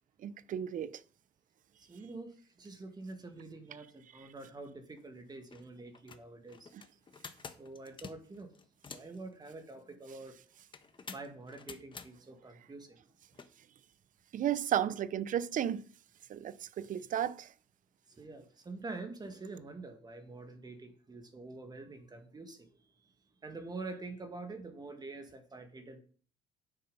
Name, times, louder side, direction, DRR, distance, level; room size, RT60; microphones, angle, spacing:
voice 1, 0.2-0.9 14.3-15.8 16.3-17.5, right 10 dB, 50° right, 0.7 m, -33 dB
voice 2, 1.9-6.7 7.6-8.5 8.9-10.4 11.1-13.0 18.1-22.7 23.4-26.0, right 3 dB, 25° right, 2.0 m, -46 dB
sound 1, 5.0-5.1 5.4-5.6 5.9-9.2 10.7-12.1 13.3-13.5, left 5 dB, 30° left, 1.2 m, -49 dB
9.1 x 8.4 x 5.5 m
cardioid pair, 110°, 17 cm